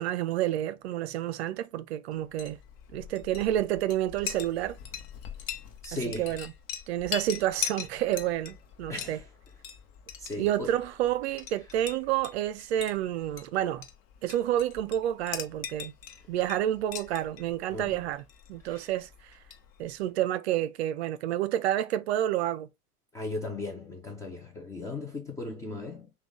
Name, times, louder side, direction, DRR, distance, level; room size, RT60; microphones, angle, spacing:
voice 1, 0.0-2.6 2.9-4.8 6.1-6.5 6.9-9.2 10.4-13.9 14.2-15.9 16.3-18.2 18.5-19.1 19.8-22.7, right 12 dB, 45° right, 0.6 m, -29 dB
Chink clink, 2.2-20.0, left 8 dB, 40° left, 1.0 m, -42 dB
voice 2, 5.8-6.4 8.9-9.3 10.2-10.8 17.7-18.0 18.6-18.9 23.1-26.1, left 2 dB, 10° left, 0.4 m, -37 dB
5.9 x 2.4 x 3.6 m
figure-of-eight pair, 100°, 46 cm